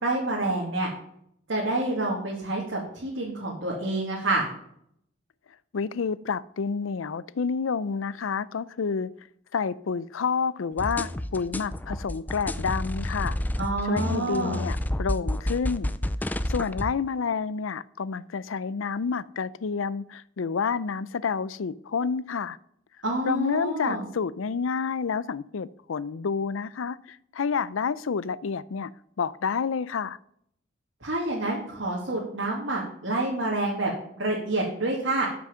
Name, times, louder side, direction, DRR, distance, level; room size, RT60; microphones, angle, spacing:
voice 1, 0.0-0.9 1.5-4.5 13.6-14.6 23.0-24.0 31.0-35.3, right 2 dB, 70° right, 2.3 m, -28 dB
voice 2, 5.7-9.1 9.5-13.4 13.8-15.9 16.5-22.6 23.3-28.9 29.2-30.2, left 5 dB, 90° left, 0.5 m, -29 dB
sound 1, 10.8-16.9, left 1 dB, 10° left, 0.3 m, -30 dB
12.5 x 6.2 x 5.6 m
head